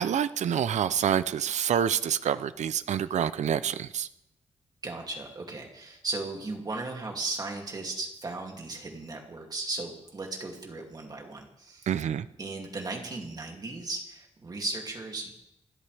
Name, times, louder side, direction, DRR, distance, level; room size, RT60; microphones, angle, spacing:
voice 1, 0.0-4.1 11.9-12.3, right 9 dB, 75° right, 13 dB, 0.6 m, -27 dB
voice 2, 4.8-11.9 12.4-15.3, right 3 dB, 35° right, 1 dB, 2.5 m, -36 dB
29.0 x 13.0 x 3.4 m, 0.84 s
wide cardioid pair, 165°, 12 cm